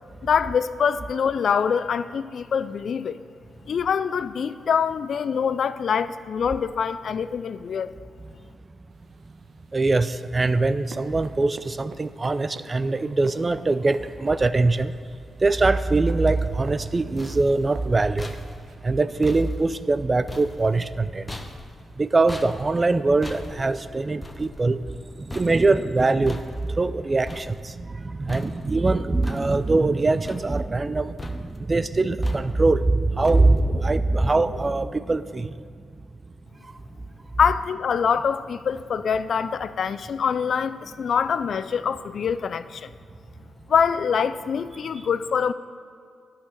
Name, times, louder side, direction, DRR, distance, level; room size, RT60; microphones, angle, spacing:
voice 1, 0.2-3.2 3.7-7.9 37.4-42.9 43.7-45.5, left 7 dB, 65° left, 14 dB, 0.3 m, -24 dB
sound 1, 8.9-18.8, right 4 dB, 65° right, 0.9 m, -48 dB
voice 2, 9.7-14.9 15.4-18.3 18.8-21.3 22.0-24.8 25.2-35.5, right 3 dB, 35° right, 14 dB, 0.5 m, -22 dB
sound 2, 16.8-28.0 28.3-28.9 29.2-29.9 30.2-30.9 31.2-31.7 32.2-32.8 33.2-33.8, left 2 dB, 25° left, 1.0 m, -41 dB
10.0 x 5.7 x 6.7 m, 2.4 s
hypercardioid pair, 45°, 0 cm